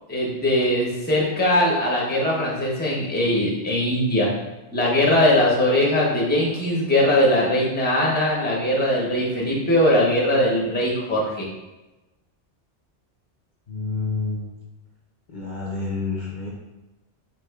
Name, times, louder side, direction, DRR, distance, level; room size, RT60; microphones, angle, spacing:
voice 1, 0.1-4.3 4.7-11.5, left 1 dB, 10° left, -4 dB, 0.8 m, -20 dB
voice 2, 13.7-14.4 15.3-16.5, left 3 dB, 50° left, -5 dB, 0.7 m, -28 dB
4.9 x 3.6 x 2.3 m, 1.1 s
omnidirectional pair, 1.2 m